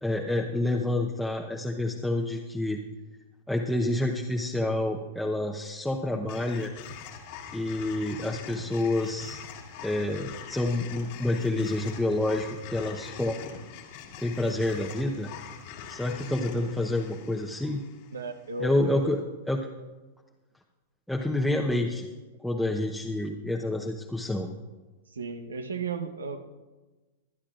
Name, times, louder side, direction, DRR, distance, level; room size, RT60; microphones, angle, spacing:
voice 1, 0.0-2.8 3.5-6.7 7.5-9.4 9.8-13.4 14.2-15.3 15.9-17.8 18.6-19.2 19.5-19.6 21.1-22.1 22.4-24.5, left 1 dB, ahead, -1 dB, 0.9 m, -28 dB
sound 1, 6.3-18.6, left 8 dB, 55° left, 1.8 m, -43 dB
voice 2, 18.1-19.1 25.1-26.5, right 4 dB, 80° right, 8 dB, 1.1 m, -35 dB
23.0 x 10.0 x 2.5 m, 1.2 s
hypercardioid pair, 100°, 0 cm